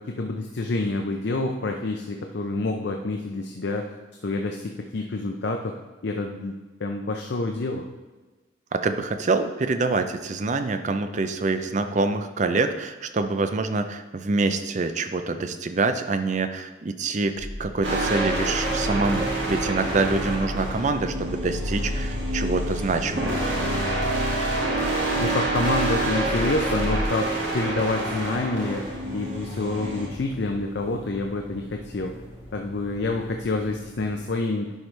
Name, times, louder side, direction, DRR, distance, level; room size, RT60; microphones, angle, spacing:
voice 1, 0.0-3.9 4.2-5.8 6.0-6.5 6.8-7.9 25.2-32.2 32.5-34.7, left 2 dB, 60° left, 3 dB, 0.5 m, -28 dB
voice 2, 8.7-23.4, right 3 dB, 40° right, 9 dB, 0.4 m, -26 dB
sound 1, 17.3-27.1, left 1 dB, 5° left, 2.3 m, -33 dB
sound 2, 17.8-30.1, right 2 dB, 70° right, 1.7 m, -28 dB
sound 3, 21.9-34.3, equal, 30° left, 2.0 m, -44 dB
11.0 x 4.7 x 3.3 m, 1.2 s
head